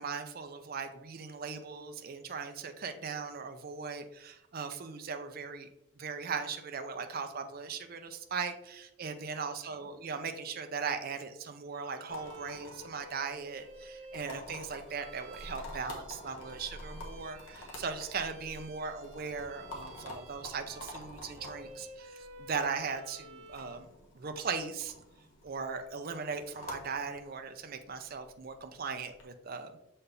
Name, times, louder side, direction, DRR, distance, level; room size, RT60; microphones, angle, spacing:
voice 1, 0.0-5.7 6.0-23.9 24.1-24.9 25.4-29.8, right 5 dB, 45° right, 7 dB, 0.5 m, -38 dB
Bowed string instrument, 11.7-23.9, right 1 dB, 85° right, 1.2 m, -53 dB
sound 1, 12.1-29.2, left 1 dB, 85° left, 1.4 m, -49 dB
6.7 x 4.2 x 3.4 m, 0.84 s
head